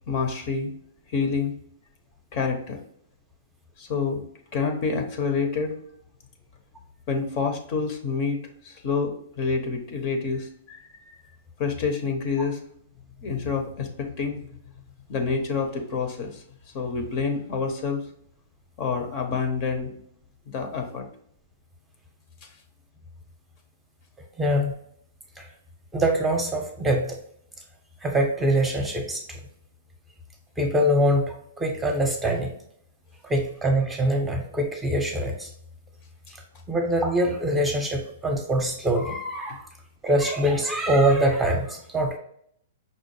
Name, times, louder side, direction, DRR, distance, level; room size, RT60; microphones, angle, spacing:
voice 1, 0.1-0.7 1.1-1.5 2.3-2.8 3.8-4.2 4.5-5.7 7.1-8.4 8.6-11.2 11.6-12.6 13.2-14.4 15.1-16.4 16.7-18.1 18.8-19.9 20.5-21.1 22.4-22.5, left 5 dB, 45° left, 5 dB, 0.8 m, -27 dB
voice 2, 24.4-24.7 25.4-25.5 25.9-27.2 28.0-29.4 30.6-32.5 33.2-35.5 36.3-39.7 40.0-42.2, right 1 dB, 10° right, 3 dB, 0.8 m, -24 dB
5.4 x 2.0 x 3.2 m, 0.68 s
hypercardioid pair, 125°, 0 cm